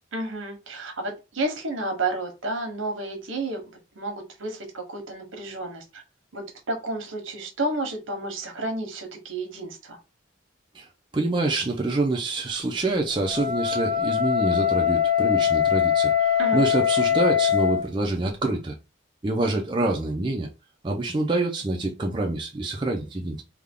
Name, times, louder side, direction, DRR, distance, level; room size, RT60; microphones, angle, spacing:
voice 1, 0.1-3.6 3.9-6.0 6.3-10.0 16.4-16.6, right 2 dB, 75° right, 1.1 m, -31 dB
voice 2, 11.1-18.8 19.2-20.5 20.8-23.4, right 2 dB, 25° right, 0.5 m, -26 dB
Wind instrument woodwind instrument, 13.2-17.9, left 9 dB, 10° left, 1.0 m, -22 dB
3.5 x 2.2 x 3.6 m
head